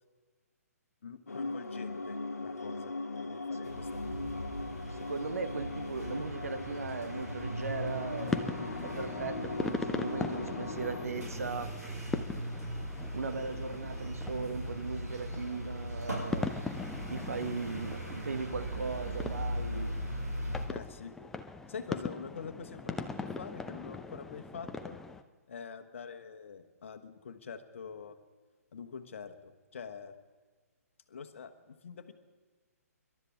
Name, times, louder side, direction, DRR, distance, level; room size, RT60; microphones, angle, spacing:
voice 1, 1.0-4.4 20.7-21.1 21.7-25.0 25.5-28.1 28.7-30.1 31.1-32.1, left 6 dB, 50° left, 7 dB, 1.4 m, -45 dB
sound 1, 1.3-11.1, left 3 dB, 70° left, 1.2 m, -39 dB
sound 2, 3.6-20.7, right 1 dB, 80° right, 5.9 m, -39 dB
voice 2, 4.9-8.3 8.8-11.7 13.1-16.6 17.1-20.0, right 4 dB, 65° right, 8 dB, 1.3 m, -38 dB
sound 3, 8.2-25.2, left 3 dB, 5° left, 0.5 m, -40 dB
26.0 x 12.5 x 3.6 m, 1.4 s
figure-of-eight pair, 130°, 9 cm